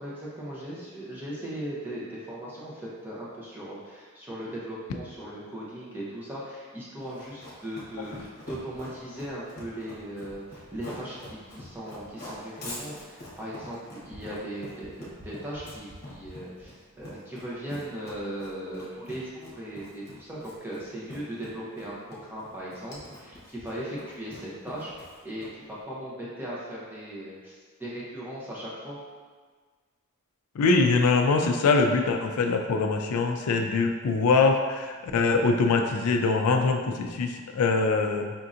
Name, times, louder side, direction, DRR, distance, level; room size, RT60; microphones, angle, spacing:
voice 1, 0.0-29.0, right 1 dB, 10° right, -7 dB, 0.7 m, -38 dB
Run, 7.1-25.7, left 1 dB, 45° left, 1.0 m, -44 dB
voice 2, 30.6-38.3, left 4 dB, 80° left, 4 dB, 0.4 m, -23 dB
5.1 x 2.7 x 2.5 m, 1.5 s
head